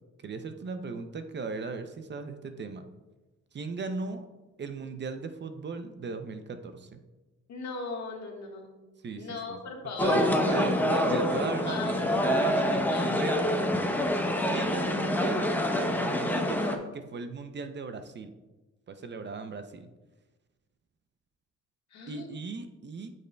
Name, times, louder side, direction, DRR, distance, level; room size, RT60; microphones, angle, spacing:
voice 1, 0.2-2.9 3.5-4.3 4.6-7.0 9.0-9.6 10.0-13.4 14.5-18.3 18.9-19.9 22.1-23.1, right 4 dB, 35° right, 8 dB, 0.6 m, -37 dB
voice 2, 7.5-8.7 9.2-10.2 11.6-12.3 12.7-13.2 21.9-22.3, left 4 dB, 65° left, 1 dB, 1.5 m, -39 dB
sound 1, 10.0-16.8, left 1 dB, 5° left, 0.7 m, -26 dB
8.3 x 6.7 x 2.2 m, 1.1 s
cardioid pair, 90°, 30 cm